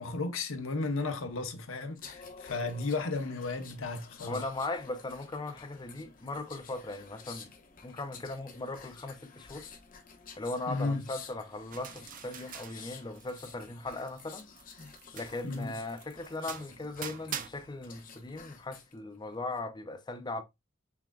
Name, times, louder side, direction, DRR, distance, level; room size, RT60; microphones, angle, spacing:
voice 1, 0.0-4.4 10.7-11.0 15.4-15.7, left 3 dB, 75° left, 0.9 m, -34 dB
sound 1, 1.9-18.9 19.3-19.6, left 5 dB, 45° left, 1.0 m, -51 dB
voice 2, 4.2-7.5 7.8-9.7 10.4-14.5 15.1-20.4, left 2 dB, 20° left, 0.5 m, -38 dB
sound 2, 11.7-13.6 13.9-17.5, right 9 dB, 40° right, 0.5 m, -44 dB
5.8 x 3.7 x 2.3 m
head